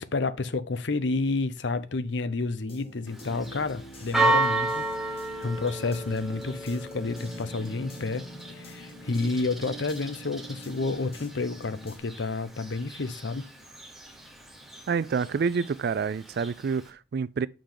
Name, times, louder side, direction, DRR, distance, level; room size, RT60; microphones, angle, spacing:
voice 1, 0.0-13.5, left 3 dB, 70° left, 0.7 m, -30 dB
sound 1, 2.7-12.0, right 1 dB, 30° left, 1.2 m, -46 dB
Church bell, 3.1-16.9, right 2 dB, ahead, 0.9 m, -33 dB
voice 2, 14.9-17.5, right 5 dB, 55° right, 0.3 m, -28 dB
7.2 x 5.0 x 3.8 m
head